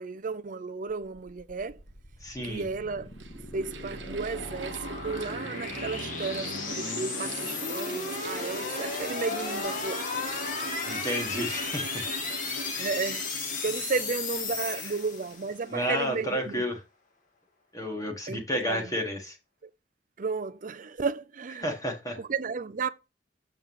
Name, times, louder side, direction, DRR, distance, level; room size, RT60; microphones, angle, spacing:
voice 1, 0.0-1.8 2.4-3.1 3.5-10.0 12.8-13.2 13.5-16.6 18.3-18.9 19.6-19.7 20.2-21.7 22.2-22.9, right 4 dB, 45° right, 0.6 m, -33 dB
sound 1, 1.0-15.6, left 4 dB, 45° left, 1.5 m, -35 dB
Mechanical fan, 1.9-2.0 2.8-15.5, right 3 dB, 85° right, 1.2 m, -41 dB
voice 2, 2.2-2.6 10.8-12.1 14.6-14.9 15.7-16.8 17.7-19.4 21.6-22.2, equal, 20° left, 1.6 m, -31 dB
7.1 x 6.9 x 3.1 m
head